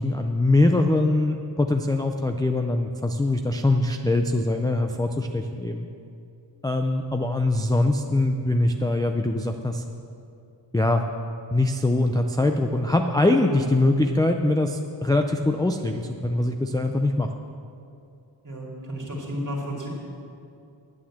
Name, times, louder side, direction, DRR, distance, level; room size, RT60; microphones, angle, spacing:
voice 1, 0.0-5.9 6.6-9.8 10.7-11.0 11.5-17.3, left 2 dB, 10° left, 4 dB, 0.4 m, -23 dB
voice 2, 18.4-19.9, equal, 40° right, -2 dB, 2.5 m, -32 dB
9.5 x 8.7 x 7.3 m, 2.5 s
wide cardioid pair, 140°, 46 cm